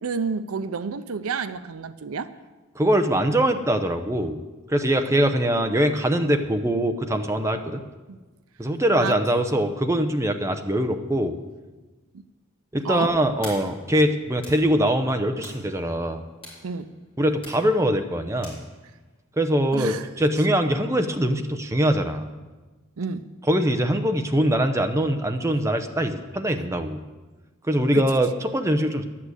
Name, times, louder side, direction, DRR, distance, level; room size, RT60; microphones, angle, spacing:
voice 1, 0.0-2.3 8.1-8.2 8.9-9.2 9.7-9.8 12.1-12.2 12.8-13.1 16.6-16.9 19.7-20.1 23.0-23.2 27.9-28.0, right 5 dB, 80° right, 13 dB, 0.6 m, -30 dB
voice 2, 2.8-4.4 4.7-7.8 8.6-11.4 12.7-16.2 17.2-18.5 19.4-22.3 23.5-27.0 27.7-29.0, right 1 dB, 15° right, 6 dB, 0.6 m, -23 dB
sound 1, 13.4-19.2, left 1 dB, 25° left, 4.1 m, -47 dB
11.0 x 8.5 x 8.0 m, 1.2 s
head